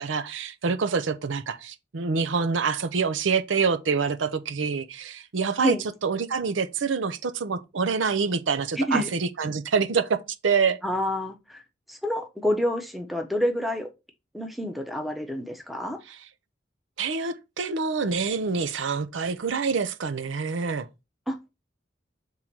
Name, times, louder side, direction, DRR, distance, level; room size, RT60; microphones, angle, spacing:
voice 1, 0.0-10.2 10.4-10.8 16.1-16.3 17.0-20.9, right 5 dB, 85° right, 0.6 m, -26 dB
voice 2, 8.8-9.1 10.8-11.6 11.9-13.9 14.3-16.0 21.3-21.4, equal, ahead, 0.8 m, -28 dB
5.6 x 3.7 x 4.5 m
head